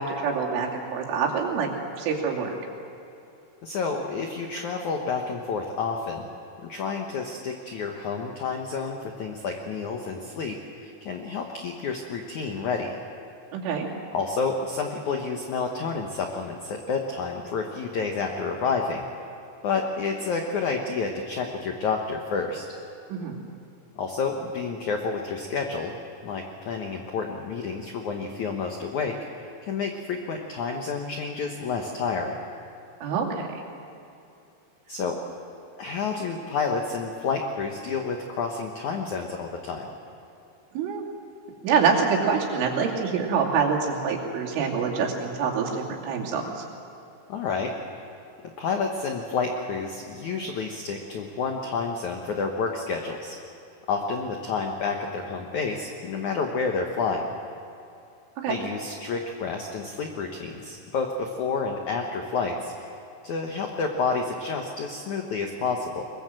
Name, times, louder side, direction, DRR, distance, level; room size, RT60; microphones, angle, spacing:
voice 1, 0.0-1.7 2.0-2.5 13.5-13.9 23.1-23.4 33.0-33.6 40.7-41.1 41.6-46.6 58.4-58.6, right 6 dB, 90° right, -1 dB, 5.1 m, -26 dB
voice 2, 3.6-6.3 6.6-13.0 14.1-19.0 19.6-22.7 23.9-25.9 26.2-32.4 34.9-35.2 35.8-39.9 47.3-47.7 48.6-53.4 53.9-57.3 58.5-62.7 63.2-66.0, left 4 dB, 80° left, 3 dB, 1.7 m, -29 dB
22.5 x 21.5 x 7.8 m, 2.7 s
omnidirectional pair, 5.4 m